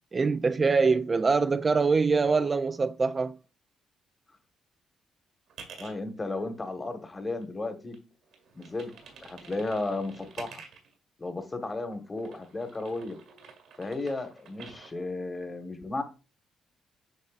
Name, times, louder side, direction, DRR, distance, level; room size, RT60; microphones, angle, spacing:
voice 1, 0.1-3.4, right 4 dB, 30° right, 0.3 m, -24 dB
sound 1, 5.5-5.9 6.5-7.7 7.9-10.9 11.7-14.9, right 5 dB, 80° right, 1.9 m, -49 dB
voice 2, 5.8-7.9 8.5-8.9 9.2-10.6 11.2-13.2 13.8-16.0, left 2 dB, 25° left, 1.3 m, -34 dB
8.4 x 5.3 x 2.4 m
cardioid pair, 90°, 0 cm